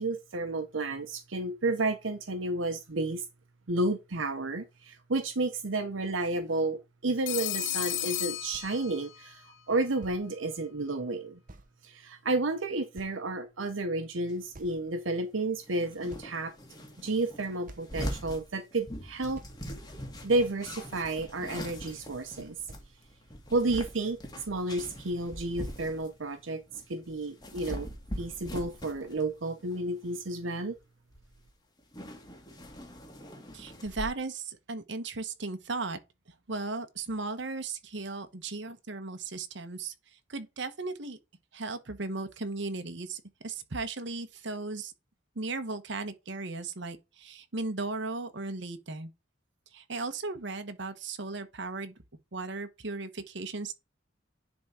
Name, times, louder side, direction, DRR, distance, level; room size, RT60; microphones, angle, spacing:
voice 1, 0.0-3.2 3.7-11.4 11.8-16.5 17.0-19.4 20.2-22.6 23.5-26.6 26.9-27.9 28.2-30.8, right 2 dB, 80° right, 0.9 m, -31 dB
Telephone, 7.3-9.3, left 13 dB, 75° left, 0.6 m, -34 dB
sound 1, 8.5-8.8 9.6-9.7 10.0-10.2 11.5-11.7 12.4-12.5 13.0-13.5 14.5-15.1 15.7-15.8 16.1-16.7 17.3-17.4 17.7-18.0 18.9-19.0 19.3-19.6 20.6-20.7 21.0-21.3 22.3-22.4 22.7-22.9, right 2 dB, 45° right, 0.8 m, -51 dB
sound 2, 14.3-14.4 15.6-26.3 26.7-29.3 29.6-29.9 30.8-30.9 31.1-31.5 31.8-34.1, equal, 20° left, 1.8 m, -42 dB
voice 2, 33.5-36.0 36.5-41.2 41.5-44.9 45.3-49.1 49.7-51.9 52.3-53.7, right 3 dB, 65° right, 1.1 m, -36 dB
10.0 x 3.7 x 4.3 m
head